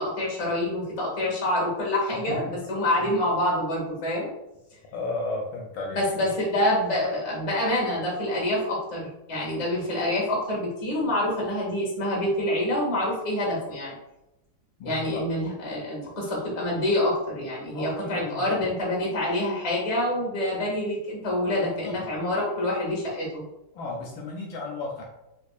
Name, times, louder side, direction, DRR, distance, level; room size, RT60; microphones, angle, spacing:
voice 1, 0.0-4.3 5.9-13.9 14.8-23.4, left 1 dB, 30° left, -3 dB, 0.6 m, -26 dB
voice 2, 4.9-6.0 14.8-15.2 17.7-18.7 21.6-22.1 23.7-25.0, left 2 dB, 75° left, 0 dB, 1.2 m, -34 dB
3.4 x 3.1 x 2.4 m, 0.92 s
omnidirectional pair, 2.4 m